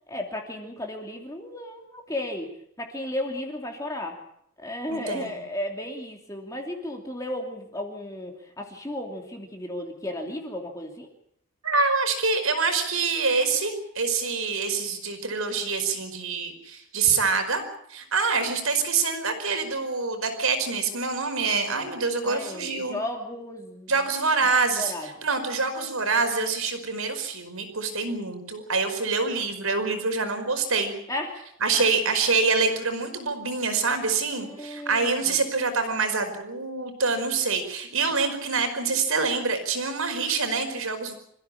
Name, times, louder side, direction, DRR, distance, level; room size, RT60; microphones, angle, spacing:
voice 1, 0.1-4.2 4.6-11.1 22.2-23.9 24.8-25.1 31.1-31.5 31.7-31.8 34.3-35.4, left 1 dB, 15° left, 1 dB, 2.8 m, -34 dB
voice 2, 4.9-5.4 11.6-17.6 17.9-23.0 23.9-24.9 25.2-30.9 31.6-41.1, right 4 dB, 80° right, 8 dB, 5.1 m, -26 dB
26.0 x 15.5 x 8.6 m, 0.71 s
head